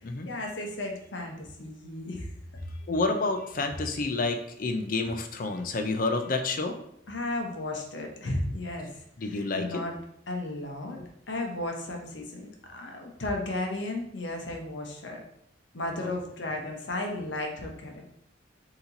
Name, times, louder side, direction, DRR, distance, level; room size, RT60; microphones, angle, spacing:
voice 1, 0.2-2.3 7.1-9.9 10.3-11.0 11.3-15.2 15.7-18.2, left 2 dB, 70° left, 2 dB, 0.9 m, -34 dB
voice 2, 2.8-6.8 9.2-9.8 11.0-11.1 16.0-16.1, left 3 dB, 45° left, 6 dB, 0.5 m, -29 dB
4.2 x 2.9 x 3.9 m, 0.73 s
head